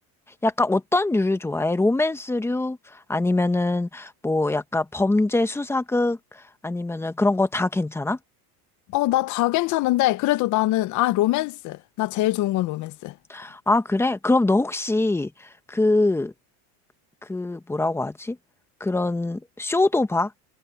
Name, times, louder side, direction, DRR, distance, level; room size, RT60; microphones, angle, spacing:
voice 1, 0.4-6.2 6.6-8.2 13.3-16.3 17.3-18.4 18.8-20.3, left 2 dB, 5° left, 1.0 m, -23 dB
voice 2, 8.9-13.1, left 17 dB, 40° left, 0.8 m, -23 dB
cardioid pair, 150°, 44 cm